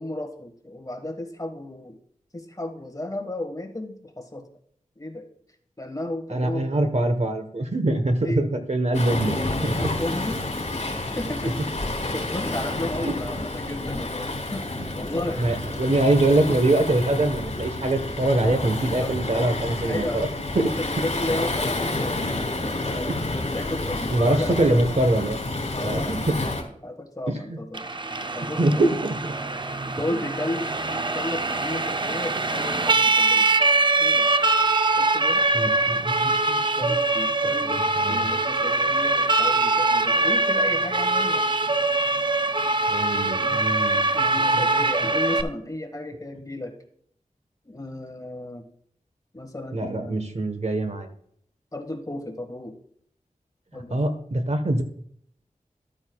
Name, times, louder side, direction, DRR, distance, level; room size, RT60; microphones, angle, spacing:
voice 1, 0.0-2.0 2.3-4.4 5.0-5.3 5.8-6.9 8.2-8.4 9.8-10.4 10.9-11.6 11.8-15.4 18.9-19.5 19.8-23.2 23.5-24.8 25.7-26.1 26.8-27.9 28.3-28.8 29.9-33.5 34.0-34.3 35.0-35.5 36.7-41.4 43.4-43.6 44.1-46.7 47.6-48.6 49.3-50.2 51.7-52.8 53.7-54.0, left 1 dB, 25° left, 4 dB, 1.5 m, -34 dB
voice 2, 6.3-9.3 9.6-9.9 13.0-13.1 14.8-14.9 15.4-20.3 20.5-20.7 24.1-25.4 25.8-26.3 27.3-27.6 28.6-29.3 30.1-30.2 35.5-37.0 38.0-38.2 42.9-44.0 44.5-44.6 49.7-51.1 53.9-54.8, right 2 dB, 50° right, 7 dB, 1.1 m, -23 dB
Waves surf, 8.9-26.6, left 2 dB, 55° left, 3.3 m, -29 dB
Siren, 27.7-45.4, right 2 dB, 35° right, 0.5 m, -23 dB
13.0 x 8.6 x 2.3 m, 0.65 s
wide cardioid pair, 65°, 14 cm